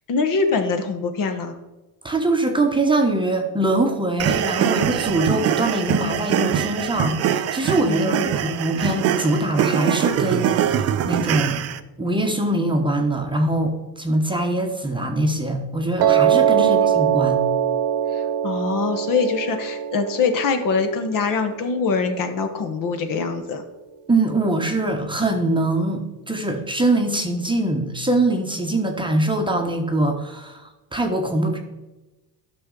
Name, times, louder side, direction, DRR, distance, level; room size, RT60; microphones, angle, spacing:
voice 1, 0.1-1.5 7.8-8.3 16.6-16.8 18.1-23.6, left 4 dB, 50° left, 7 dB, 1.2 m, -23 dB
voice 2, 2.0-11.6 12.0-17.4 24.1-31.6, right 2 dB, 10° right, 3 dB, 0.9 m, -23 dB
sound 1, 4.2-11.8, right 9 dB, 35° right, 0.4 m, -23 dB
Piano, 16.0-22.1, right 10 dB, 90° right, 1.2 m, -22 dB
12.0 x 6.1 x 3.8 m, 1.1 s
cardioid pair, 135°, 43 cm